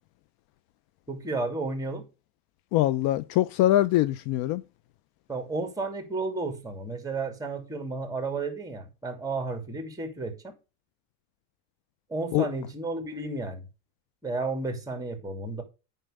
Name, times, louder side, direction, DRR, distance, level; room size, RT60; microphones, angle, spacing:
voice 1, 1.1-2.1 5.3-10.5 12.1-13.6 14.2-15.6, right 3 dB, 10° right, 2.6 m, -32 dB
voice 2, 2.7-4.6 12.3-12.5, left 14 dB, 55° left, 0.5 m, -23 dB
9.0 x 5.7 x 5.1 m
supercardioid pair, 115°, 44 cm